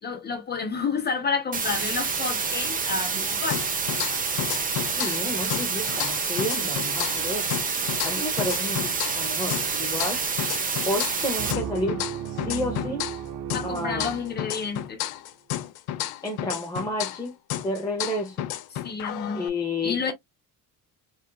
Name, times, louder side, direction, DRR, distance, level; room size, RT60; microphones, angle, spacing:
voice 1, 0.0-3.6 13.5-15.0 18.7-19.4 19.8-20.1, left 5 dB, 25° left, 1.2 m, -30 dB
sound 1, 1.5-11.5, right 5 dB, 25° right, 0.6 m, -28 dB
sound 2, 3.5-5.2 5.5-9.2 9.5-13.2 13.5-17.2 17.5-19.5, left 12 dB, 75° left, 0.6 m, -32 dB
voice 2, 5.0-7.5 8.0-10.2 10.9-13.1 13.6-14.1 16.2-17.3 17.6-18.5 19.3-20.1, left 1 dB, 10° left, 0.8 m, -31 dB
sound 3, 11.4-15.0, right 9 dB, 80° right, 0.7 m, -35 dB
3.6 x 2.7 x 2.2 m
cardioid pair, 150°, 37 cm